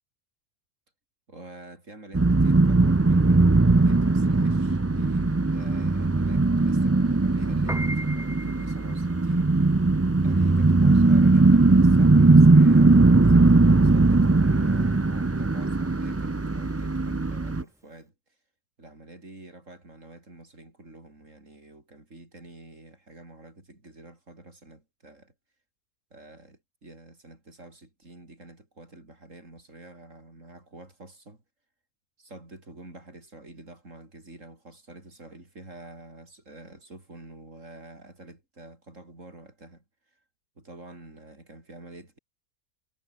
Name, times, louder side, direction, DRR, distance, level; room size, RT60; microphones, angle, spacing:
voice 1, 1.3-9.9 10.2-18.1 18.8-25.3 26.1-31.4 32.2-40.2 40.6-42.2, right 2 dB, 65° right, 6.3 m, -47 dB
sound 1, 2.1-17.6, right 3 dB, 20° right, 0.4 m, -19 dB
Piano, 7.5-17.9, equal, ahead, 1.7 m, -41 dB
omnidirectional pair, 1.4 m